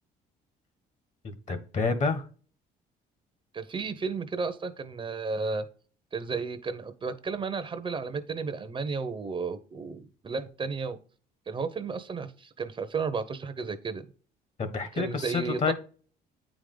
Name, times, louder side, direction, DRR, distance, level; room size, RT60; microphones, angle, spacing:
voice 1, 1.2-2.2 14.6-15.7, left 4 dB, 45° left, 1.5 m, -29 dB
voice 2, 3.5-5.7 6.1-11.0 11.5-14.0 14.9-15.7, right 4 dB, 30° right, 0.8 m, -33 dB
8.7 x 5.0 x 3.9 m
cardioid pair, 110°, 17 cm